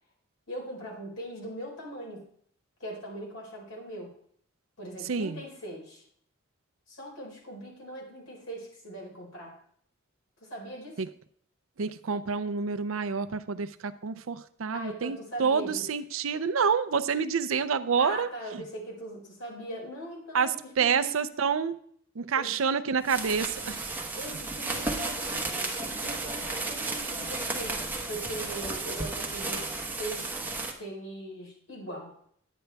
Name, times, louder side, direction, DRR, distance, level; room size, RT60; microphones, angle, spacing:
voice 1, 0.5-2.2 2.8-4.1 4.8-6.1 6.9-9.6 10.4-11.0 14.7-15.9 18.0-21.1 22.3-22.5 24.2-25.7 26.0-30.4 30.8-32.1, right 1 dB, 75° left, -2 dB, 4.4 m, -40 dB
voice 2, 5.0-5.4 11.0-11.1 11.8-18.3 20.3-21.8 22.2-23.8, right 6 dB, 75° right, 11 dB, 0.5 m, -28 dB
sound 1, 23.0-30.7, right 3 dB, 10° right, 1.1 m, -33 dB
10.5 x 9.2 x 3.4 m, 0.62 s
head